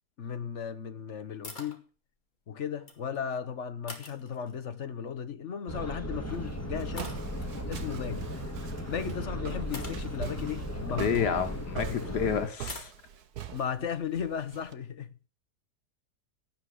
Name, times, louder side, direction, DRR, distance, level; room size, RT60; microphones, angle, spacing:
voice 1, 0.2-1.8 2.5-7.2 7.7-8.3 8.9-11.3 13.5-15.1, left 7 dB, 50° left, 1.3 m, -35 dB
sound 1, 1.4-1.8 2.7-3.2 3.9-4.8 6.0-6.3 7.0-7.6 9.1-9.2 9.7-11.8 12.7-12.9, left 2 dB, 30° left, 2.4 m, -45 dB
sound 2, 5.7-12.5, equal, 10° left, 1.9 m, -36 dB
Walk footsteps, 6.1-14.7, right 9 dB, 70° right, 1.5 m, -44 dB
voice 2, 10.9-12.9, left 7 dB, 90° left, 1.9 m, -29 dB
17.0 x 5.8 x 8.2 m
omnidirectional pair, 1.7 m